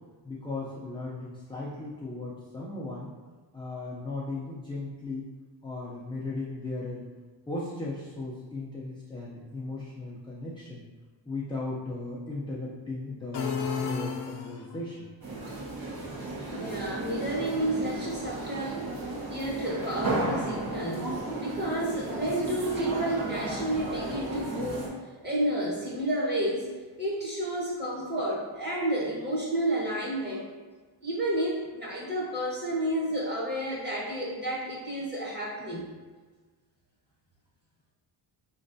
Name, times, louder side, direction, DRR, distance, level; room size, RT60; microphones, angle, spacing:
voice 1, 0.2-3.1 3.5-5.2 5.6-7.0 7.5-10.8 11.3-15.1, left 2 dB, 10° left, -6 dB, 0.5 m, -37 dB
sound 1, 13.3-14.9, left 5 dB, 65° left, 0.6 m, -32 dB
sound 2, 15.2-24.9, right 2 dB, 55° right, 1.3 m, -34 dB
voice 2, 16.5-18.8 19.3-21.1 21.4-25.0 25.2-26.7 27.0-30.5 31.0-35.9, right 1 dB, 25° right, -5 dB, 1.2 m, -31 dB
5.1 x 3.1 x 2.6 m, 1.4 s
wide cardioid pair, 140°, 44 cm